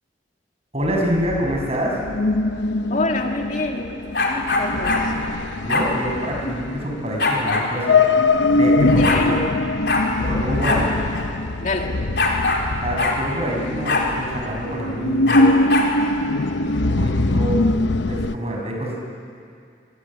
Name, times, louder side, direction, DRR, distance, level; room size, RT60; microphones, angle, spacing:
voice 1, 0.7-2.0 5.6-8.0 8.5-9.4 10.2-11.0 12.8-15.5 16.8-17.6 18.1-19.0, equal, 35° right, 0 dB, 6.5 m, -26 dB
sound 1, 0.8-18.4, left 2 dB, 85° left, 0.8 m, -22 dB
voice 2, 2.9-5.1 9.0-9.4 11.6-11.9, left 2 dB, 45° left, 2 dB, 2.4 m, -27 dB
sound 2, 4.1-5.0 5.7-5.9 7.2-7.7 8.5-8.6 8.8-9.2 9.9-10.1 10.6-10.8 11.1-11.2 12.2-12.6 13.0-13.2 13.8-14.1 15.3-15.9, left 3 dB, 65° left, 4.1 m, -21 dB
27.0 x 23.5 x 8.8 m, 2.4 s
head